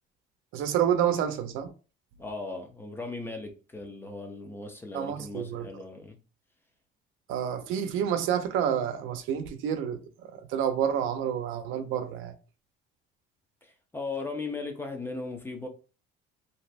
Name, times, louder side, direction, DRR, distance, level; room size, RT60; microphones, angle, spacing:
voice 1, 0.5-1.7 4.9-5.7 7.3-12.3, right 9 dB, 80° right, 0.5 m, -29 dB
voice 2, 2.2-6.2 13.6-15.7, left 3 dB, 10° left, 0.4 m, -37 dB
2.6 x 2.4 x 3.2 m
cardioid pair, 170°, 21 cm